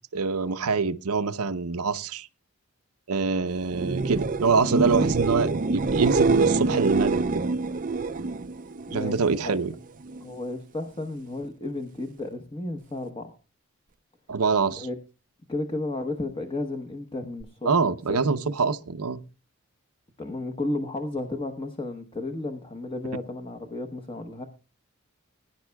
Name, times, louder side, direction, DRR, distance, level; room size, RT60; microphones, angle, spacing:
voice 1, 0.1-2.3 3.1-7.4 8.9-9.7 14.3-14.9 17.7-19.2, right 4 dB, 85° right, 0.7 m, -25 dB
sound 1, 3.7-9.4 9.8-10.3 17.4-17.5, right 3 dB, 35° right, 0.5 m, -26 dB
voice 2, 10.2-13.4 14.8-15.0 15.5-18.0 18.2-18.7 20.2-24.4, left 2 dB, 25° left, 1.0 m, -33 dB
21.0 x 10.5 x 2.3 m
head